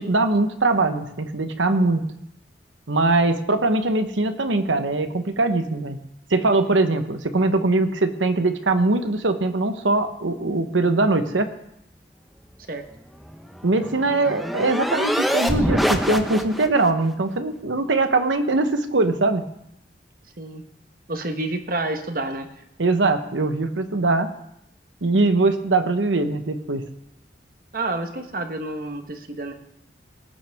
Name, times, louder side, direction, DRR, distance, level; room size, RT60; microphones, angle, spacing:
voice 1, 0.0-2.0 2.9-6.0 6.3-11.5 13.6-19.5 22.8-24.3 25.0-26.9, right 2 dB, 90° right, 8 dB, 1.0 m, -21 dB
sound 1, 13.3-16.9, equal, ahead, 0.7 m, -25 dB
voice 2, 21.1-22.5 27.7-29.5, right 2 dB, 50° right, 6 dB, 1.2 m, -29 dB
19.0 x 9.2 x 3.5 m, 0.79 s
head